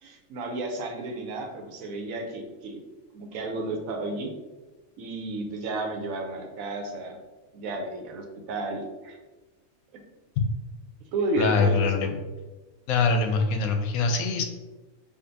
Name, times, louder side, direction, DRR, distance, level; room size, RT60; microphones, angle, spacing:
voice 1, 0.0-2.8 3.1-4.3 5.0-7.2 7.5-9.2 11.1-11.9, right 2 dB, 85° right, 3 dB, 1.1 m, -32 dB
voice 2, 11.4-12.1 12.9-14.4, left 4 dB, 90° left, 5 dB, 1.0 m, -23 dB
5.0 x 2.4 x 2.6 m, 1.2 s
omnidirectional pair, 1.4 m